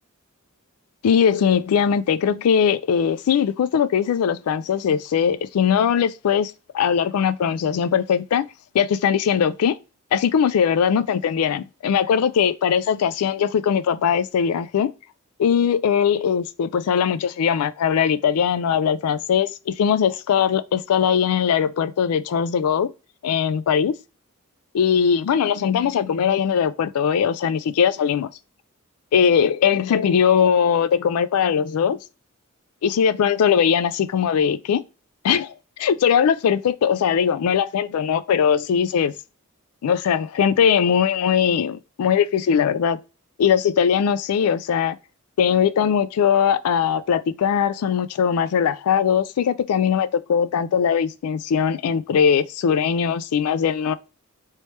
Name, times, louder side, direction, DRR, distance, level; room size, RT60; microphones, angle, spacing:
voice 1, 1.0-8.4 8.7-9.8 10.1-14.9 15.4-22.9 23.2-23.9 24.7-28.3 29.1-32.0 32.8-34.8 35.2-39.1 39.8-43.0 43.4-45.0 45.4-53.9, left 7 dB, 80° left, 0.3 m, -20 dB
3.2 x 3.0 x 3.1 m
head